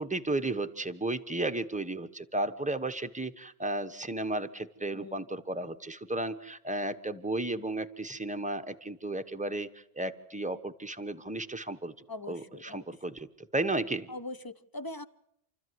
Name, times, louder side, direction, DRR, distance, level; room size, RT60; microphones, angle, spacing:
voice 1, 0.0-11.9 12.3-13.3 13.5-14.1, right 2 dB, 5° right, 9 dB, 1.0 m, -34 dB
voice 2, 4.9-5.3 12.1-12.8 14.1-15.0, left 2 dB, 20° left, 12 dB, 0.9 m, -41 dB
28.5 x 14.0 x 9.5 m, 0.78 s
omnidirectional pair, 1.1 m